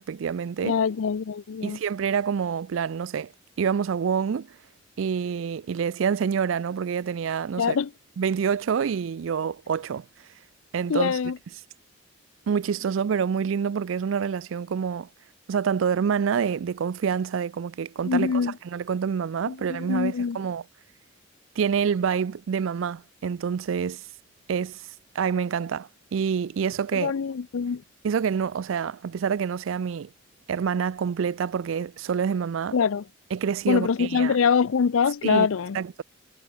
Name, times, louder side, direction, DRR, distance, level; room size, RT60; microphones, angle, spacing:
voice 1, 0.0-0.8 1.6-3.3 3.6-4.5 5.0-7.8 8.2-10.1 10.7-11.2 12.5-15.1 15.5-18.3 18.7-20.6 21.6-24.0 24.5-24.8 25.1-27.1 28.0-30.1 30.5-32.8 33.3-34.3 35.2-35.5 35.7-36.0, right 7 dB, 75° right, 0.4 m, -27 dB
voice 2, 0.6-1.8 7.6-7.9 10.9-11.4 18.0-18.5 19.5-20.4 26.9-27.8 32.7-33.0 33.7-35.8, left 6 dB, 90° left, 0.5 m, -24 dB
head